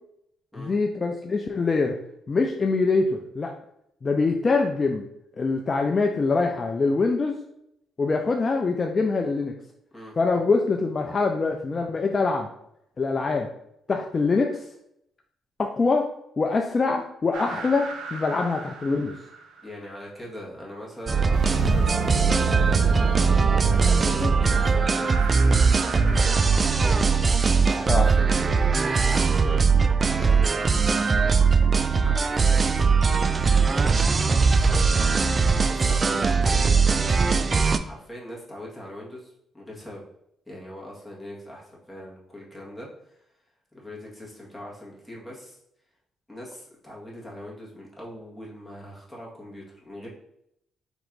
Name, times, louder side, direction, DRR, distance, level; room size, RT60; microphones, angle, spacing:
voice 1, 0.6-1.9 2.3-3.5 4.0-5.0 5.4-7.4 8.0-9.5 10.2-12.5 13.0-13.5 13.9-14.6 15.6-16.1 16.4-19.1 24.2-24.3 27.9-28.1, left 4 dB, 35° left, 3 dB, 0.4 m, -24 dB
sound 1, 17.3-19.6 21.3-26.4, right 5 dB, 80° right, 0.7 m, -30 dB
voice 2, 19.6-22.9 23.6-24.0 24.4-29.6 30.0-31.5 32.0-32.9 33.6-40.0 40.4-43.3 43.7-45.6 46.3-50.1, left 1 dB, 5° left, -4 dB, 1.6 m, -41 dB
sound 2, 21.1-37.8, right 5 dB, 35° right, 0.3 m, -20 dB
4.4 x 3.0 x 3.8 m, 0.77 s
cardioid pair, 90°, 0 cm